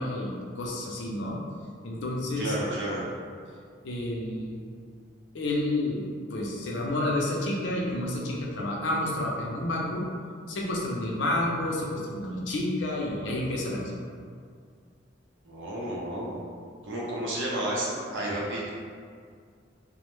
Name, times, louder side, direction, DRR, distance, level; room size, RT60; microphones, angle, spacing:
voice 1, 0.0-1.4 1.8-2.6 3.8-4.6 5.3-10.0 10.5-13.8, left 1 dB, 75° left, -2 dB, 0.5 m, -30 dB
voice 2, 2.4-3.1 15.4-16.4 16.8-18.7, right 1 dB, 85° right, -5 dB, 0.6 m, -31 dB
2.1 x 2.0 x 3.0 m, 2.1 s
head